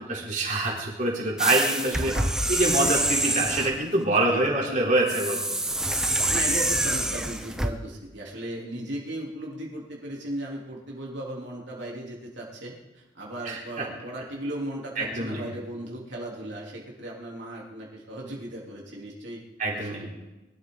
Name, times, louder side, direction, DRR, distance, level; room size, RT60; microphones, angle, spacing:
voice 1, 0.1-2.1 2.5-5.4 13.4-13.6 15.0-15.5 19.6-20.1, right 2 dB, 40° right, -3 dB, 4.0 m, -25 dB
sound 1, 1.4-3.8 5.1-7.7, right 1 dB, 5° right, 0.8 m, -26 dB
voice 2, 2.0-2.3 2.7-2.9 4.2-4.6 6.3-19.4 19.7-20.1, right 1 dB, 70° right, -3 dB, 3.5 m, -36 dB
23.0 x 12.5 x 4.0 m, 1.1 s
head